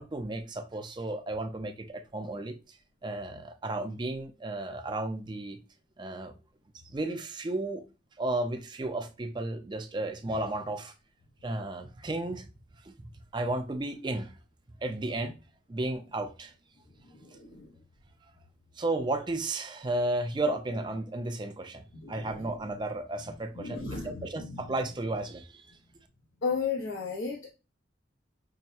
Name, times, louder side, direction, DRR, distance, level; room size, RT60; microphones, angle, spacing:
voice 1, 0.0-2.8 3.0-5.6 6.0-6.3 6.8-7.8 8.2-10.9 11.4-12.5 13.3-14.3 14.8-15.4 15.7-16.5 18.8-25.7, right 2 dB, 25° right, 0.4 m, -33 dB
voice 2, 17.2-17.7 21.9-22.5 23.5-24.6 26.4-27.5, left 5 dB, 80° left, 0.8 m, -34 dB
5.7 x 2.1 x 2.7 m
head